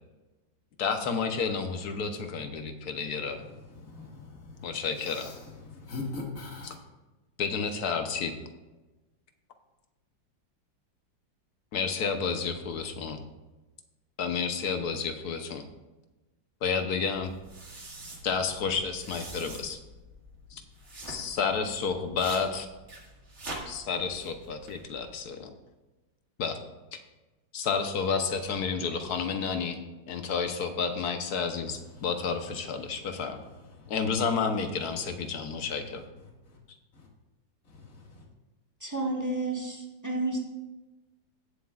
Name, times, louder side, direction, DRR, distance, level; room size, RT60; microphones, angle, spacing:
voice 1, 0.8-3.4 4.6-5.3 6.6-6.7 7.4-8.3 11.7-13.2 14.2-15.6 16.6-17.3 18.2-19.8 20.5-20.6 21.1-22.7 23.7-25.5 26.4-26.6 26.9-27.0 27.5-29.8 30.1-33.4 33.9-36.0, left 5 dB, 60° left, 6 dB, 1.3 m, -30 dB
voice 2, 3.8-4.7 5.1-5.3 5.6-6.8 33.8-33.9 37.0-37.1 37.7-38.2, left 3 dB, 45° left, -1 dB, 2.2 m, -40 dB
sound 1, 17.1-25.2, right 1 dB, 40° right, 1.9 m, -45 dB
voice 3, 38.8-40.4, right 2 dB, 10° right, -1 dB, 1.2 m, -31 dB
18.0 x 7.6 x 2.4 m, 1.1 s
omnidirectional pair, 2.0 m